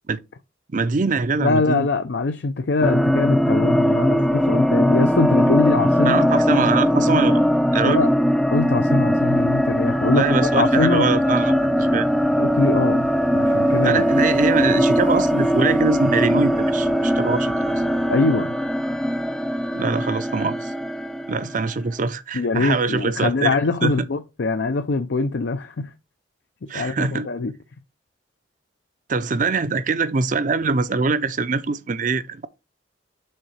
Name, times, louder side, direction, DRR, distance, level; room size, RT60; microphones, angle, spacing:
voice 1, 0.7-1.9 6.0-8.0 10.2-12.1 13.8-17.7 19.7-20.7 21.3-23.5 23.8-23.9 26.7-27.3 29.1-32.5, right 4 dB, 45° right, 0.5 m, -23 dB
voice 2, 1.4-6.7 7.8-8.1 8.5-11.1 12.4-14.1 18.1-18.6 22.3-25.9 26.6-27.5, left 3 dB, 70° left, 0.5 m, -23 dB
sound 1, 2.8-21.7, equal, ahead, 0.4 m, -20 dB
sound 2, 9.2-18.2, left 2 dB, 50° left, 0.8 m, -42 dB
6.6 x 4.0 x 4.6 m
head